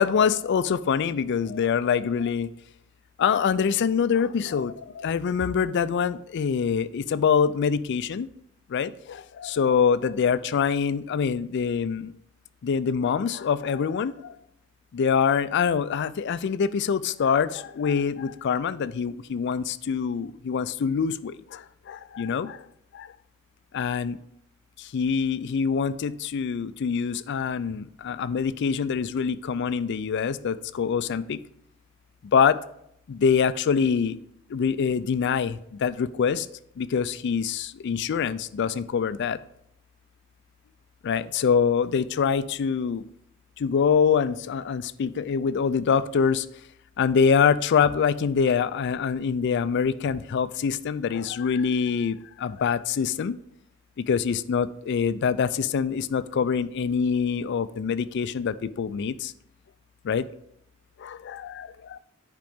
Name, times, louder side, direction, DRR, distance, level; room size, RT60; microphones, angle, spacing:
voice 1, 0.0-2.5 3.2-8.3 8.7-12.1 12.6-14.3 14.9-22.7 22.9-23.1 23.7-24.2 24.8-31.4 32.3-32.6 33.1-34.2 34.5-36.5 36.8-39.4 41.0-43.0 43.6-46.5 47.0-53.4 54.0-59.3 60.0-60.3 61.0-62.0, left 6 dB, 55° left, 15 dB, 0.4 m, -25 dB
10.5 x 5.1 x 3.6 m, 0.74 s
head